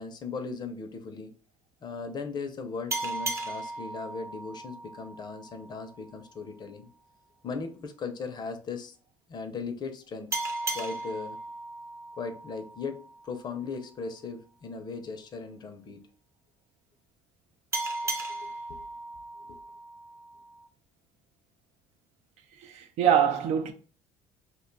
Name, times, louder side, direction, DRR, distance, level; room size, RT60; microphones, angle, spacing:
voice 1, 0.0-1.3 1.8-6.9 7.4-8.9 9.3-10.3 10.7-11.4 12.2-13.0 13.2-16.1 18.3-18.8 19.5-19.6, left 4 dB, 40° left, 0.5 m, -38 dB
sound 1, 2.9-6.1 10.3-13.5 17.7-20.7, right 2 dB, 25° right, 0.6 m, -36 dB
voice 2, 22.6-23.7, right 9 dB, 75° right, 0.5 m, -24 dB
2.5 x 2.2 x 3.8 m
cardioid pair, 115°, 11 cm